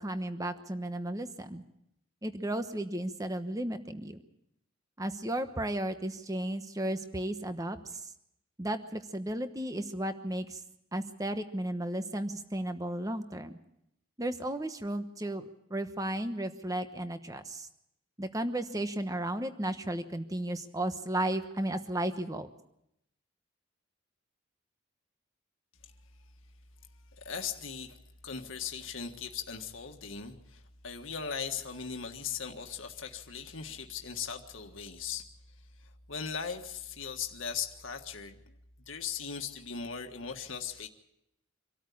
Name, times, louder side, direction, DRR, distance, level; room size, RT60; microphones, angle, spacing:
voice 1, 0.0-1.6 2.2-4.2 5.0-8.1 8.6-10.6 10.9-13.6 14.2-17.7 18.2-22.5, right 1 dB, 15° right, 9 dB, 1.1 m, -34 dB
voice 2, 27.2-28.0 28.2-35.3 35.8-38.4 38.9-40.9, left 6 dB, 75° left, 4 dB, 1.6 m, -38 dB
25.0 x 13.5 x 8.5 m, 0.81 s
head